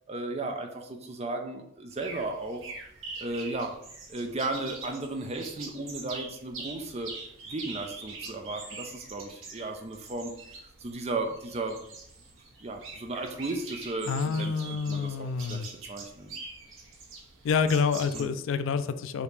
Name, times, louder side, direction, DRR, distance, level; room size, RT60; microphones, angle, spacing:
voice 1, 0.1-2.6 3.2-3.7 4.1-7.1 7.5-10.3 10.8-11.8 12.6-16.3 18.1-18.3, right 2 dB, 30° right, 4 dB, 0.5 m, -35 dB
sound 1, 1.9-18.2, right 3 dB, 75° right, 0.9 m, -44 dB
voice 2, 14.1-15.7 17.4-19.2, left 5 dB, 70° left, 12 dB, 0.3 m, -28 dB
5.0 x 2.8 x 3.2 m, 0.73 s
head